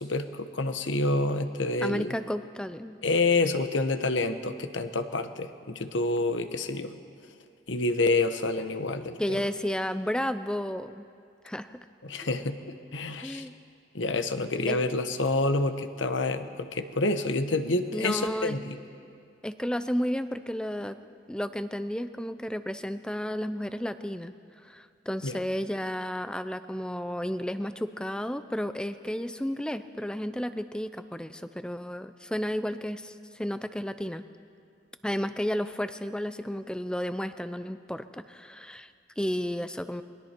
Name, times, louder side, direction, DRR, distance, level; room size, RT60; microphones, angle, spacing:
voice 1, 0.0-2.1 3.0-6.9 7.7-9.4 12.0-13.4 13.9-18.8 25.2-25.4, left 2 dB, 90° left, 9 dB, 1.2 m, -28 dB
voice 2, 1.8-3.0 9.2-11.0 11.4-11.8 12.2-12.3 13.2-13.5 14.7-14.8 17.9-18.6 19.4-21.0 21.3-24.3 24.6-34.2 35.0-40.0, equal, 5° left, 11 dB, 0.5 m, -32 dB
27.5 x 22.0 x 4.5 m, 2.5 s
head